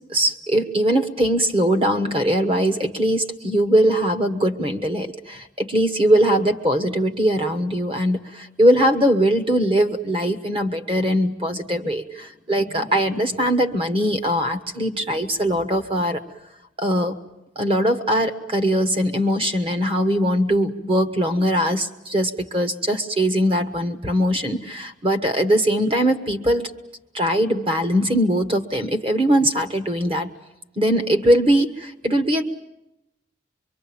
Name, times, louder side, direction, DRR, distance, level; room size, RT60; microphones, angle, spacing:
voice 1, 0.1-16.2 16.8-17.2 17.5-26.7 27.1-30.3 30.8-32.4, equal, 30° right, 9 dB, 1.3 m, -21 dB
24.0 x 24.0 x 8.7 m, 0.86 s
head